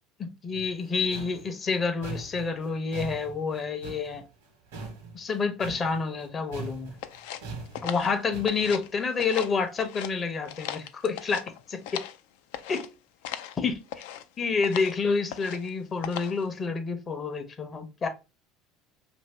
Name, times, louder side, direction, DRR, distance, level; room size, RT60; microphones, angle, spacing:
voice 1, 0.2-4.3 5.1-6.9 7.8-12.0 12.7-12.9 13.6-13.8 14.4-18.1, left 5 dB, 35° left, 0.7 m, -29 dB
sound 1, 0.5-6.3 6.5-8.7, right 4 dB, 85° right, 1.0 m, -41 dB
sound 2, 7.0-8.9 9.2-10.1 10.4-12.2 12.5-12.9 13.2-13.6 13.9-14.2 14.6-15.0 15.3-15.7 16.0-16.4, left 11 dB, 80° left, 0.3 m, -38 dB
2.7 x 2.6 x 3.2 m
supercardioid pair, 85°, 0 cm